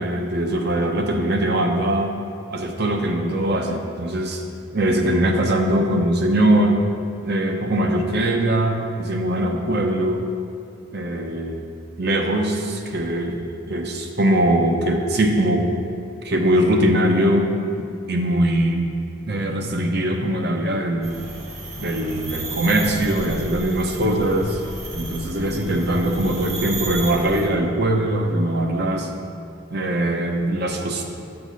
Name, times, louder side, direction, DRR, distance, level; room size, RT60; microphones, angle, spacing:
voice 1, 0.0-2.1 2.5-4.4 4.7-6.8 7.2-10.2 10.9-11.7 12.0-13.4 13.7-15.7 16.2-17.5 17.8-18.9 19.3-21.2 21.8-24.6 24.9-29.1 29.7-31.0, right 1 dB, 60° right, 3 dB, 0.9 m, -21 dB
sound 1, 21.0-27.5, right 2 dB, 35° right, 1.2 m, -33 dB
9.3 x 6.9 x 4.0 m, 2.6 s
head